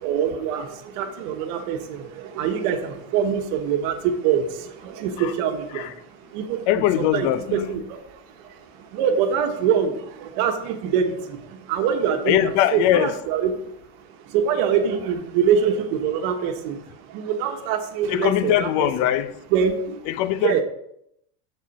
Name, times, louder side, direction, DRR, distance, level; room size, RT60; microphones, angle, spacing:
voice 1, 0.0-6.7 7.0-18.9 19.5-20.0 20.4-20.6, right 7 dB, 60° right, 1.3 m, -25 dB
voice 2, 6.7-7.8 12.2-13.2 18.1-19.3 20.1-20.6, left 12 dB, 60° left, 0.8 m, -21 dB
13.0 x 4.3 x 4.1 m
supercardioid pair, 150°, 42 cm